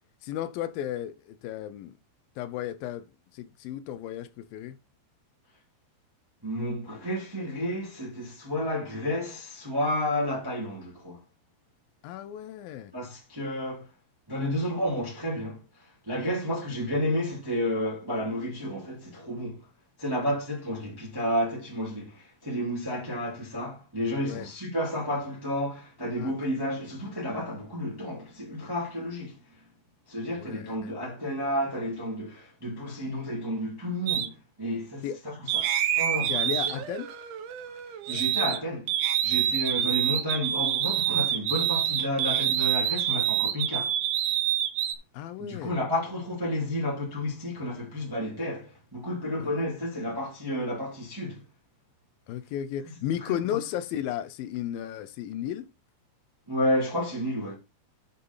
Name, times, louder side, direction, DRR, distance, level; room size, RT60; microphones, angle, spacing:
voice 1, 0.2-2.0 2.4-3.1 3.3-4.8 12.0-12.9 24.2-24.5 26.2-26.3 30.3-30.9 35.0-35.2 36.3-37.1 45.1-45.8 49.4-49.8 52.3-55.7, left 11 dB, 85° left, 2.0 m, -34 dB
voice 2, 6.4-11.2 12.9-13.9 14.3-15.6 16.1-19.7 20.0-29.4 30.1-36.8 38.1-38.9 39.2-44.0 45.4-51.4 53.5-53.6 56.5-57.6, left 1 dB, 5° right, 1.8 m, -31 dB
sound 1, 34.1-34.3 35.5-38.6 38.9-44.9, right 11 dB, 85° right, 1.8 m, -27 dB
7.4 x 6.5 x 5.5 m
omnidirectional pair, 5.1 m